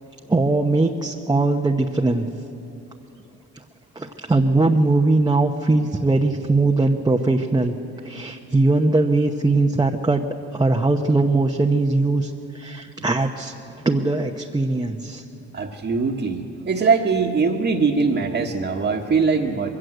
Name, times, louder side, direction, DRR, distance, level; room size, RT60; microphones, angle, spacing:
voice 1, 0.3-2.3 3.9-7.8 8.0-10.2 10.5-13.5 13.8-15.2, right 2 dB, 15° right, 2 dB, 0.9 m, -20 dB
voice 2, 15.5-19.7, right 4 dB, 40° right, -3 dB, 1.5 m, -21 dB
21.5 x 16.0 x 7.9 m, 2.9 s
cardioid pair, 90°, 30 cm